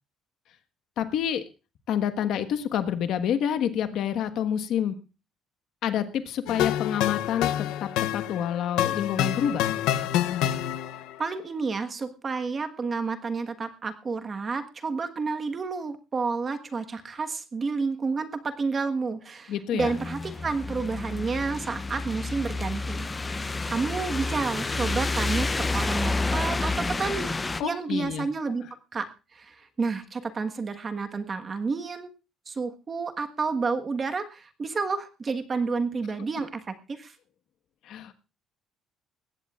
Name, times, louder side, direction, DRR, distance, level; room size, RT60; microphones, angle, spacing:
voice 1, 1.0-1.4 1.9-5.0 5.8-9.7 19.5-19.9 27.6-28.3 37.8-38.1, left 9 dB, 65° left, 9 dB, 1.4 m, -28 dB
sound 1, 6.5-11.2, left 11 dB, 90° left, 0.8 m, -27 dB
voice 2, 11.2-23.4 23.7-27.3 27.6-28.6 28.9-29.1 29.3-32.1 32.5-37.1, right 4 dB, 30° right, 7 dB, 1.4 m, -30 dB
sound 2, 19.8-27.6, left 3 dB, 15° left, 0.7 m, -29 dB
20.5 x 16.0 x 2.5 m, 0.31 s
cardioid pair, 140°, 0 cm